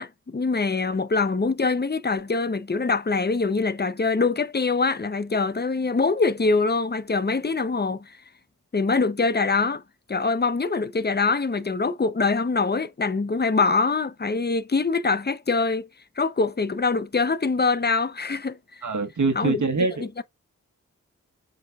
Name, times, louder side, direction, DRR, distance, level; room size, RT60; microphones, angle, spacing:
voice 1, 0.0-8.2 8.7-9.8 10.1-15.9 16.2-18.9 19.3-19.7 20.0-20.2, left 4 dB, 35° left, 0.9 m, -24 dB
voice 2, 18.8-20.1, right 4 dB, 70° right, 1.5 m, -24 dB
7.8 x 5.2 x 2.5 m
cardioid pair, 50°, 31 cm